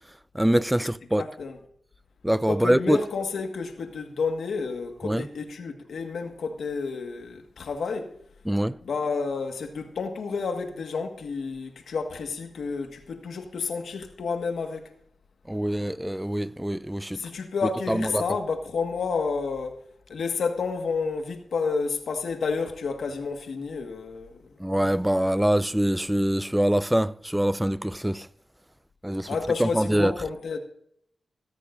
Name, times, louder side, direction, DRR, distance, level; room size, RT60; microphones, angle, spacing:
voice 1, 0.3-1.2 2.2-3.0 5.0-5.3 8.5-8.8 15.5-17.2 17.9-18.2 24.6-28.3 29.0-29.3 29.6-30.1, right 1 dB, 5° right, 0.4 m, -24 dB
voice 2, 1.2-1.6 2.5-8.1 8.8-14.9 17.1-19.8 20.1-24.5 29.3-30.6, left 4 dB, 80° left, 1.6 m, -30 dB
15.5 x 13.5 x 2.6 m
cardioid pair, 65°, 0 cm